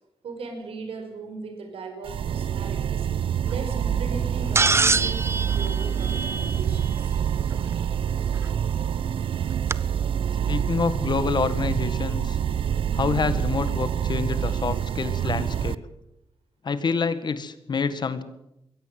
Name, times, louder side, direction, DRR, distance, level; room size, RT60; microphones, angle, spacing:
voice 1, 0.2-3.1 3.4-7.2, right 3 dB, 90° right, 6 dB, 5.7 m, -38 dB
sound 1, 2.0-15.8, right 8 dB, 70° right, 0.7 m, -26 dB
sound 2, 4.5-6.9 8.4-8.5 9.7-9.8, right 3 dB, 25° right, 0.8 m, -24 dB
voice 2, 10.5-12.4 12.9-15.8 16.7-18.2, left 5 dB, 50° left, 12 dB, 1.9 m, -27 dB
22.5 x 17.0 x 7.9 m, 0.84 s
wide cardioid pair, 110°, 10 cm